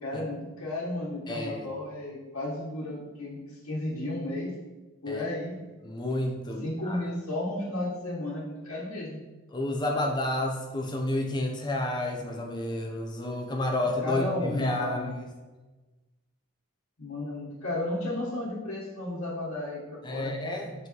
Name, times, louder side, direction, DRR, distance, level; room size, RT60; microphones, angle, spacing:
voice 1, 0.0-4.5 5.0-5.6 6.6-9.2 14.0-15.1 17.0-20.3, left 1 dB, 90° left, -9 dB, 1.3 m, -33 dB
voice 2, 1.3-1.7 5.1-5.3 5.8-7.0 9.5-15.3 20.0-20.7, left 1 dB, 20° left, 1 dB, 0.7 m, -30 dB
5.8 x 5.5 x 3.0 m, 1.2 s
head